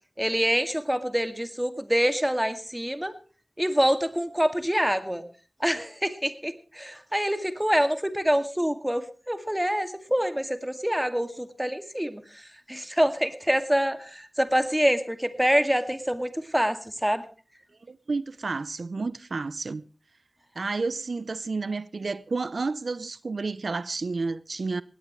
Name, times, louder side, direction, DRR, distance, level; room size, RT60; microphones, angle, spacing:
voice 1, 0.2-3.1 3.6-5.2 5.6-17.2, equal, 10° right, 2.1 m, -26 dB
voice 2, 17.9-19.8 20.6-24.8, right 3 dB, 85° right, 0.6 m, -31 dB
20.0 x 17.5 x 3.2 m
wide cardioid pair, 75°, 0 cm